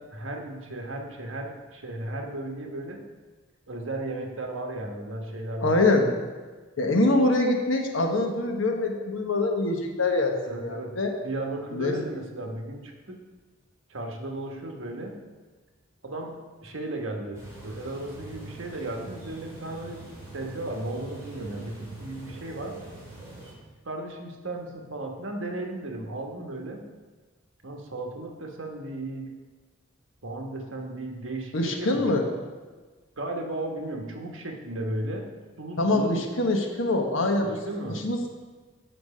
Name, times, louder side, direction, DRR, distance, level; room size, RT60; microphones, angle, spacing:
voice 1, 0.0-3.0 3.7-5.8 10.4-11.0 11.2-13.2 13.9-15.2 16.0-20.0 20.3-22.8 23.8-26.8 27.6-29.3 30.2-32.2 33.2-35.3 35.6-36.2 37.4-38.1, right 1 dB, 80° right, 2 dB, 1.2 m, -35 dB
voice 2, 5.6-6.1 6.8-11.1 11.7-12.0 31.5-32.2 35.8-37.6 37.9-38.3, left 2 dB, 80° left, 2 dB, 1.2 m, -24 dB
sound 1, 17.3-23.5, right 3 dB, 15° right, 2.7 m, -44 dB
7.9 x 6.0 x 4.9 m, 1.4 s
head